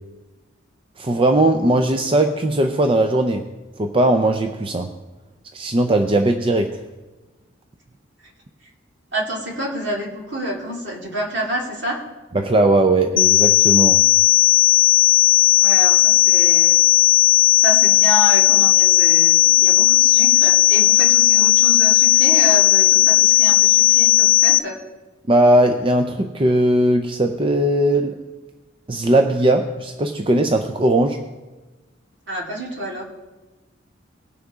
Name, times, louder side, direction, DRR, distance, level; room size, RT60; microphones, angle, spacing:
voice 1, 1.0-3.5 3.8-4.9 5.5-6.8 12.3-14.0 25.3-28.2 28.9-31.2, right 1 dB, 25° right, 6 dB, 0.5 m, -18 dB
voice 2, 9.1-12.0 15.6-16.8 17.6-24.8 32.3-33.0, right 1 dB, 60° right, -2 dB, 2.4 m, -28 dB
sound 1, 13.2-24.6, left 17 dB, 75° left, 0.6 m, -14 dB
19.5 x 6.6 x 3.6 m, 1.2 s
head